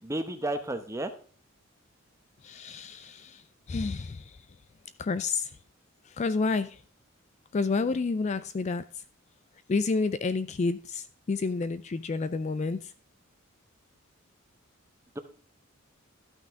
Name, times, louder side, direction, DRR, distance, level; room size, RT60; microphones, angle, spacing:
voice 1, 0.0-1.1 15.1-15.2, right 1 dB, 15° right, 0.9 m, -32 dB
voice 2, 2.4-4.4 5.0-5.6 6.1-6.8 7.5-9.0 9.7-12.9, left 4 dB, 35° left, 0.3 m, -30 dB
12.5 x 5.9 x 3.6 m
head